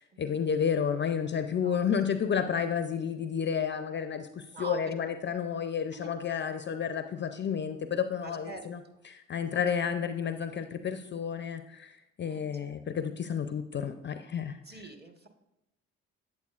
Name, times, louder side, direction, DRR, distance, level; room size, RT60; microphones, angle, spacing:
voice 1, 0.0-8.8 9.1-14.6, left 7 dB, 35° left, 9 dB, 0.5 m, -31 dB
voice 2, 4.5-4.9 5.9-6.1 8.2-8.7 8.9-9.0 9.5-9.9 12.3-12.7 14.6-15.3, right 3 dB, 30° right, 4 dB, 1.4 m, -45 dB
8.4 x 8.0 x 2.4 m, 0.89 s
hypercardioid pair, 55°, 34 cm